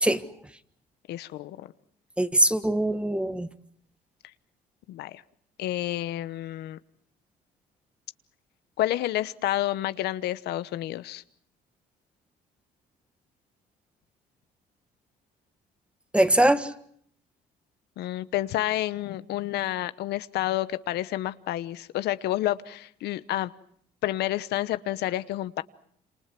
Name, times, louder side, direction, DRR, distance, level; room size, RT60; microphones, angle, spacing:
voice 1, 1.1-1.7 4.9-5.2 5.6-6.8 8.8-11.2 18.0-23.5 24.0-25.6, left 14 dB, 75° left, 14 dB, 1.0 m, -29 dB
voice 2, 2.2-3.5 16.1-16.7, right 1 dB, 5° right, 11 dB, 1.4 m, -22 dB
27.5 x 27.0 x 6.0 m, 0.65 s
cardioid pair, 110°, 17 cm